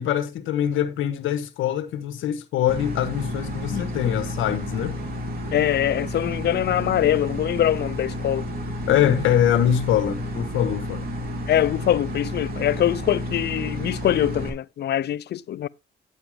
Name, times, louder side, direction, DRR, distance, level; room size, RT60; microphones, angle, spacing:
voice 1, 0.0-5.0 8.9-11.0, left 10 dB, 85° left, 1.4 m, -23 dB
sound 1, 2.7-14.5, equal, 50° right, 3.2 m, -31 dB
voice 2, 5.5-8.4 11.5-15.7, left 11 dB, 60° left, 0.5 m, -23 dB
10.0 x 8.2 x 3.5 m
cardioid pair, 90°, 20 cm